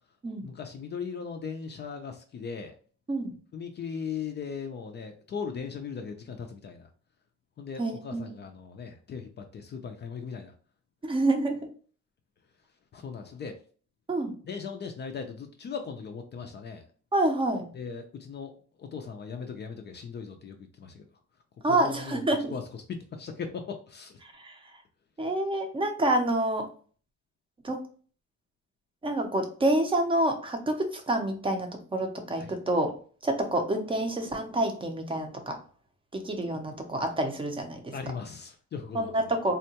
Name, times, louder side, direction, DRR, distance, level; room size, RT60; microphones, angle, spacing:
voice 1, 0.4-2.7 3.5-6.9 7.6-10.5 12.9-13.5 14.4-16.8 17.7-18.5 18.8-21.0 21.7-22.2 22.5-22.6 22.9-24.2 32.4-32.6 37.9-39.2, left 6 dB, 35° left, 5 dB, 0.4 m, -38 dB
voice 2, 7.8-8.4 11.0-11.6 14.1-14.3 17.1-17.7 21.6-22.5 24.2-24.5 25.2-26.7 27.6-27.8 29.0-32.9 33.2-35.6 36.1-37.9 38.9-39.5, right 1 dB, 15° right, 5 dB, 0.5 m, -28 dB
3.6 x 2.2 x 2.8 m, 0.42 s
cardioid pair, 150°, 30 cm